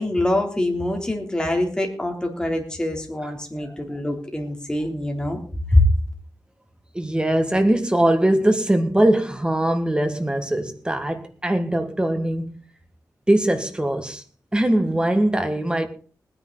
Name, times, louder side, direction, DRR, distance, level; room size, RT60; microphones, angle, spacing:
voice 1, 0.0-5.8, left 1 dB, 10° left, 3.4 m, -24 dB
voice 2, 6.9-12.6 13.3-14.2 14.5-15.9, right 1 dB, 15° right, 1.8 m, -21 dB
20.0 x 10.0 x 4.0 m
wide cardioid pair, 135°, 7 cm